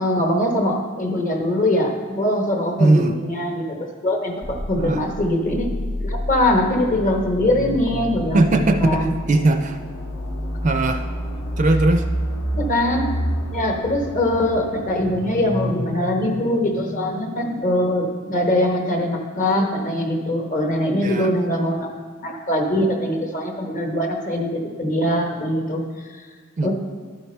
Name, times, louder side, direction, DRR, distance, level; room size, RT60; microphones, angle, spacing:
voice 1, 0.0-5.7 6.0-8.5 8.8-9.2 12.6-13.1 13.5-21.9 22.2-25.8 26.6-26.7, left 1 dB, 40° left, 2 dB, 1.0 m, -22 dB
voice 2, 2.8-3.2 4.8-5.0 8.3-9.8 10.6-11.1 11.6-12.1 21.0-21.3 26.6-26.7, right 2 dB, 35° right, 7 dB, 0.4 m, -19 dB
sound 1, 4.4-18.2, equal, 65° left, 0.8 m, -29 dB
11.5 x 4.6 x 4.2 m, 1.5 s
head